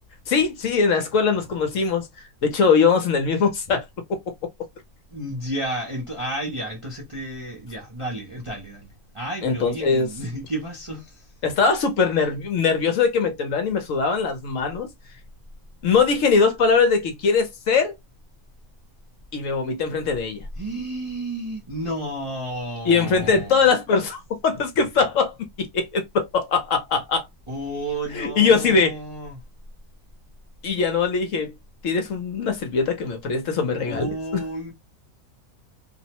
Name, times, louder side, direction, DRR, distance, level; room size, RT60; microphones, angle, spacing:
voice 1, 0.3-2.1 2.4-3.9 9.4-10.1 11.4-14.9 15.8-18.0 19.3-20.4 22.8-27.3 28.1-29.0 30.6-31.5 31.8-34.4, left 5 dB, 65° left, 1.0 m, -21 dB
voice 2, 5.1-11.1 20.6-23.6 27.5-29.4 33.8-34.7, right 1 dB, 35° right, 0.5 m, -32 dB
2.6 x 2.1 x 2.8 m
omnidirectional pair, 1.6 m